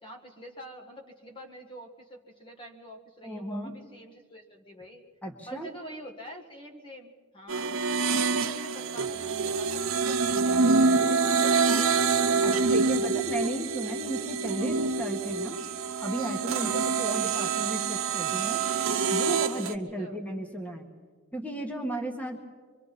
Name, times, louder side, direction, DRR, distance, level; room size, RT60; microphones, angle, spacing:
voice 1, 0.0-5.0 5.5-7.7 8.3-12.6 13.4-13.5 14.6-14.7 16.3-16.9 20.0-20.2, equal, 25° left, 2 dB, 1.6 m, -46 dB
voice 2, 3.2-3.8 5.2-5.7 12.4-15.6 16.0-18.6 19.1-20.9 21.3-22.4, right 1 dB, 10° left, 3 dB, 1.6 m, -34 dB
sound 1, 7.5-19.7, right 4 dB, 75° right, 0.9 m, -26 dB
26.0 x 24.0 x 4.2 m, 1.5 s
head